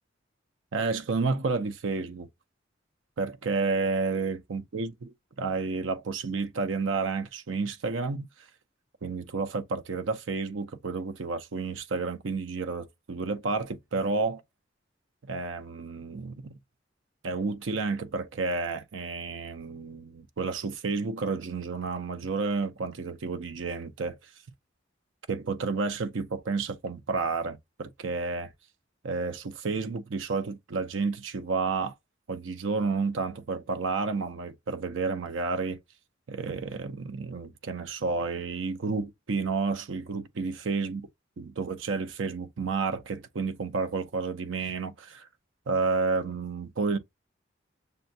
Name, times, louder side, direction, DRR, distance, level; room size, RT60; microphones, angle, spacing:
voice 1, 0.7-2.3 3.2-8.3 9.0-14.4 15.2-16.5 17.2-24.2 25.3-28.5 29.0-31.9 32.3-35.8 36.3-41.0 41.4-45.3 45.7-47.0, right 4 dB, 75° right, 0.5 m, -31 dB
6.6 x 2.2 x 2.6 m
head